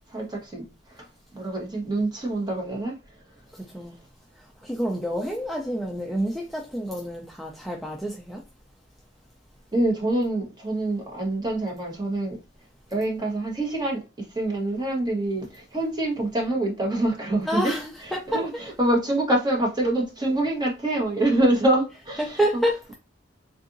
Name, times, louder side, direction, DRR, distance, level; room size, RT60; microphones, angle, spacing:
voice 1, 0.1-0.6 0.9-1.1 1.3-2.9 9.7-12.4 12.9-14.0 14.3-17.7 18.0-22.6, right 1 dB, 20° right, 1.0 m, -25 dB
voice 2, 3.5-4.0 4.4-8.4 17.5-18.4 22.3-22.9, equal, ahead, 0.4 m, -28 dB
3.7 x 2.5 x 2.5 m
head